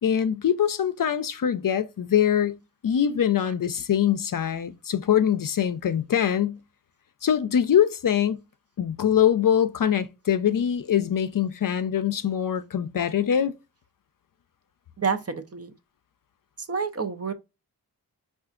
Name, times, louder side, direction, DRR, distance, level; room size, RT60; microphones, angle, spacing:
voice 1, 0.0-6.6 7.2-8.4 8.8-13.5, left 9 dB, 50° left, 0.5 m, -23 dB
voice 2, 15.0-15.7 16.6-17.3, right 5 dB, 35° right, 0.5 m, -29 dB
4.7 x 2.5 x 2.4 m
cardioid pair, 45°, 42 cm